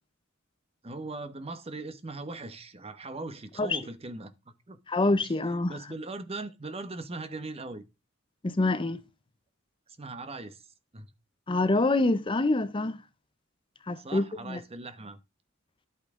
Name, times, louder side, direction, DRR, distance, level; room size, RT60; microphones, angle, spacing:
voice 1, 0.8-4.3 4.7-4.8 5.2-7.8 10.0-10.7 10.9-11.1 14.0-15.2, right 2 dB, 30° right, 1.0 m, -40 dB
voice 2, 4.9-5.8 8.4-9.0 11.5-13.0 13.9-14.6, left 2 dB, 25° left, 0.6 m, -26 dB
11.0 x 8.5 x 3.6 m
head